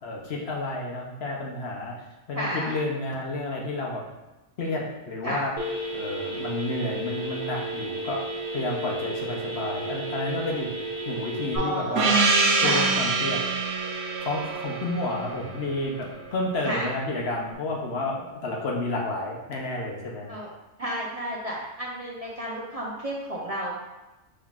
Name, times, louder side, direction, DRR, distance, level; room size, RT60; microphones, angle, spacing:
voice 1, 0.0-4.0 4.6-5.5 5.9-8.2 8.5-10.7 11.1-12.2 12.6-13.4 14.2-20.3, left 2 dB, 60° left, -1 dB, 1.0 m, -31 dB
voice 2, 2.3-2.7 5.2-5.5 11.5-12.3 12.6-12.9 16.7-16.9 20.2-20.5 20.8-23.7, right 1 dB, 40° right, -5 dB, 0.6 m, -31 dB
Telephone, 5.6-11.6, right 1 dB, 5° right, 1.3 m, -33 dB
Gong, 12.0-16.3, right 4 dB, 80° right, 1.0 m, -25 dB
5.5 x 3.7 x 2.4 m, 1.1 s
omnidirectional pair, 1.3 m